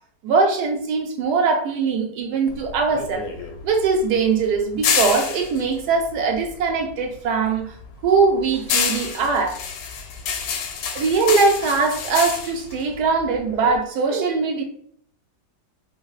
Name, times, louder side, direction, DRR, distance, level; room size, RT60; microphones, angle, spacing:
voice 1, 0.2-3.2 3.6-7.7 8.0-9.6 10.9-14.6, right 4 dB, 70° right, 1.1 m, -21 dB
sound 1, 2.5-7.0 7.3-13.8, left 6 dB, 85° left, 1.3 m, -28 dB
4.5 x 2.0 x 2.3 m
omnidirectional pair, 2.0 m